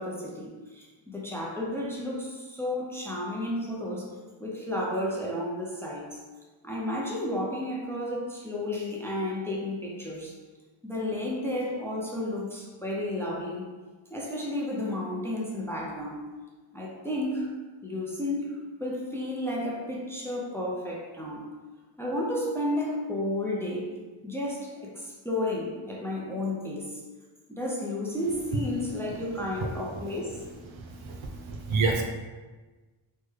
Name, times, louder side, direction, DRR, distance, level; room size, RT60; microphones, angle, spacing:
voice 1, 0.0-4.1 4.4-6.2 6.6-10.3 10.8-13.7 14.1-16.2 16.7-17.6 17.8-18.5 18.8-21.5 22.0-23.9 24.2-27.0 27.5-30.4, left 1 dB, 5° left, -4 dB, 0.4 m, -32 dB
voice 2, 30.7-31.2 31.5-32.0, right 3 dB, 75° right, 2 dB, 0.6 m, -27 dB
3.3 x 2.1 x 3.2 m, 1.3 s
wide cardioid pair, 115°, 48 cm